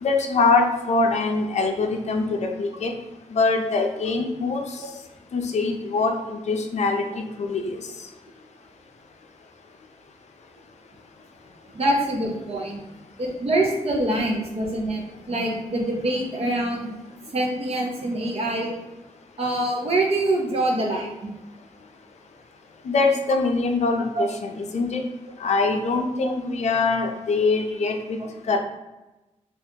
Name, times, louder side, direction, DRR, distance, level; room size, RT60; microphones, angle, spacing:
voice 1, 0.0-2.9 3.3-4.7 5.3-7.8 22.8-25.1 25.4-28.2 28.5-28.6, left 3 dB, 65° left, 3 dB, 0.4 m, -23 dB
voice 2, 11.7-12.8 13.2-15.0 15.3-16.9 17.3-18.7 19.4-21.3 24.1-24.2 26.2-26.3 28.2-28.3, right 1 dB, 50° right, -1 dB, 0.7 m, -25 dB
3.6 x 2.4 x 2.7 m, 1.0 s
wide cardioid pair, 160°, 13 cm